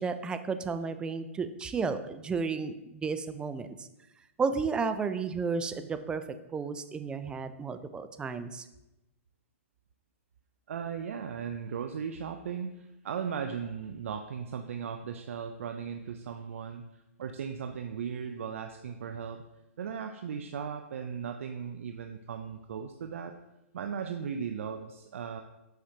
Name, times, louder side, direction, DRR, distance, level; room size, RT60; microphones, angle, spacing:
voice 1, 0.0-3.9 4.4-6.2 6.5-8.6, right 5 dB, 10° right, 10 dB, 0.4 m, -32 dB
voice 2, 10.7-19.4 19.8-23.4 23.7-25.4, right 7 dB, 70° right, 6 dB, 0.5 m, -37 dB
7.8 x 4.9 x 2.8 m, 0.95 s
hypercardioid pair, 130°, 7 cm